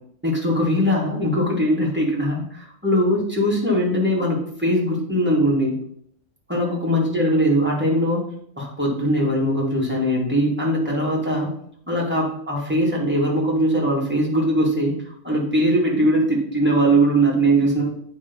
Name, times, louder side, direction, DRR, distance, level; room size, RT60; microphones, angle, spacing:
voice 1, 0.2-5.8 6.5-8.2 8.6-11.5 11.9-17.9, equal, 5° right, -4 dB, 2.3 m, -21 dB
8.5 x 4.1 x 5.4 m, 0.64 s
omnidirectional pair, 1.7 m